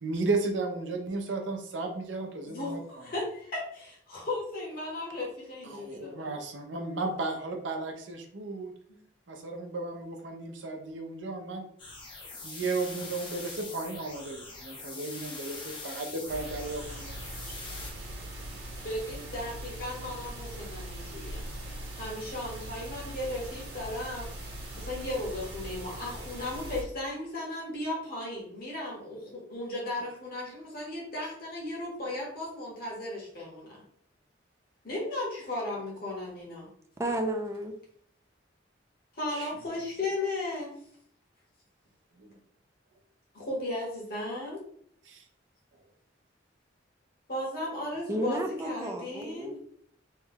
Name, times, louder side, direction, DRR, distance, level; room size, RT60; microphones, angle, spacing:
voice 1, 0.0-2.8 5.6-8.7 9.3-11.7 12.4-17.2 17.5-17.6 39.3-39.5 42.2-42.4 45.1-45.2, right 3 dB, 90° right, 4 dB, 0.7 m, -34 dB
voice 2, 2.5-6.3 18.8-21.5 21.9-24.3 24.8-33.8 34.8-36.7 39.2-40.7 43.3-44.6 47.3-49.6, left 1 dB, 50° left, -4 dB, 1.3 m, -36 dB
sound 1, 11.8-17.9, left 3 dB, 25° left, 0.7 m, -43 dB
sound 2, 16.3-26.8, right 1 dB, 55° right, 1.1 m, -41 dB
voice 3, 37.0-37.7 48.1-49.6, right 1 dB, 15° right, 4 dB, 0.4 m, -32 dB
3.2 x 2.3 x 3.4 m, 0.64 s
head